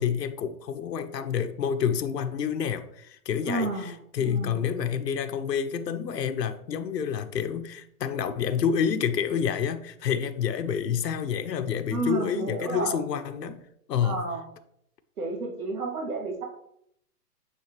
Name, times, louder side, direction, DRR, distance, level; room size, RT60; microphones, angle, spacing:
voice 1, 0.0-13.6 13.9-14.2, left 7 dB, 90° left, 9 dB, 0.8 m, -28 dB
voice 2, 3.4-4.6 11.9-13.0 13.3-13.6 14.0-14.5 15.2-16.4, right 3 dB, 65° right, -1 dB, 1.9 m, -32 dB
9.7 x 3.7 x 3.0 m, 0.73 s
hypercardioid pair, 170°, 48 cm